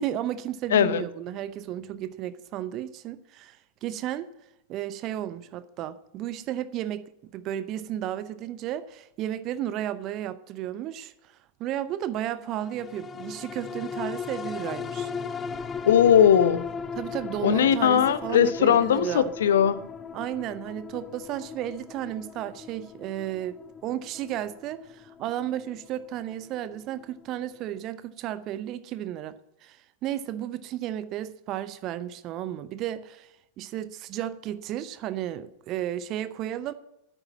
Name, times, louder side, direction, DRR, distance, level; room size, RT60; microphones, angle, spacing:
voice 1, 0.0-4.3 4.7-7.1 7.3-15.1 17.0-19.3 20.1-29.4 29.6-36.7, right 11 dB, 35° right, 15 dB, 0.6 m, -33 dB
voice 2, 0.7-1.0 15.9-16.6 17.4-19.8, left 9 dB, 60° left, 14 dB, 0.8 m, -19 dB
sound 1, 12.7-27.4 27.8-27.9, left 6 dB, 20° left, 0.5 m, -38 dB
10.0 x 8.8 x 7.4 m, 0.87 s
figure-of-eight pair, 90°, 0 cm